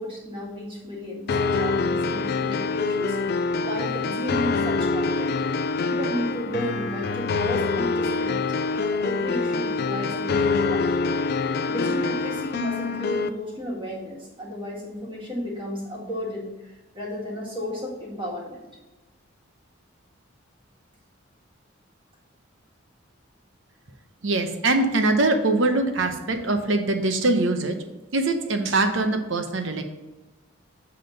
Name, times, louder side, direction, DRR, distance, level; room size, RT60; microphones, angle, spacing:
voice 1, 0.0-3.2 3.6-5.4 5.8-8.4 8.7-11.1 11.7-18.7, left 1 dB, 25° right, -4 dB, 1.8 m, -33 dB
sound 1, 1.3-13.3, left 4 dB, 50° left, 0.3 m, -25 dB
voice 2, 24.2-27.8 28.1-29.8, right 2 dB, 70° right, 6 dB, 0.8 m, -23 dB
7.8 x 3.6 x 5.1 m, 1.1 s
head